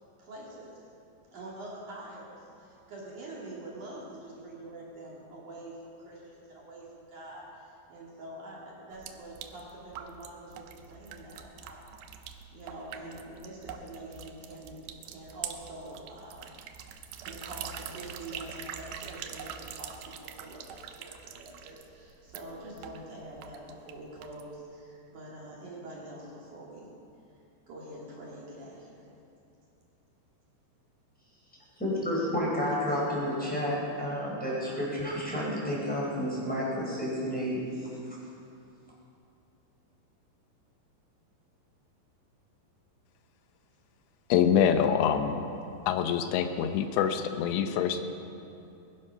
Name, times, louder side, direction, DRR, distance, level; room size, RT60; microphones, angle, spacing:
voice 1, 0.2-0.8 1.3-12.0 12.5-16.6 17.2-26.9 27.7-29.1 32.9-33.0, right 1 dB, 50° right, -4 dB, 3.1 m, -45 dB
sound 1, 8.9-24.6, right 8 dB, 80° right, 2.1 m, -44 dB
voice 2, 31.8-37.9, equal, ahead, -5 dB, 4.1 m, -31 dB
voice 3, 44.3-45.4 45.9-48.0, left 8 dB, 85° left, 8 dB, 3.0 m, -25 dB
21.0 x 11.0 x 5.7 m, 2.6 s
omnidirectional pair, 5.1 m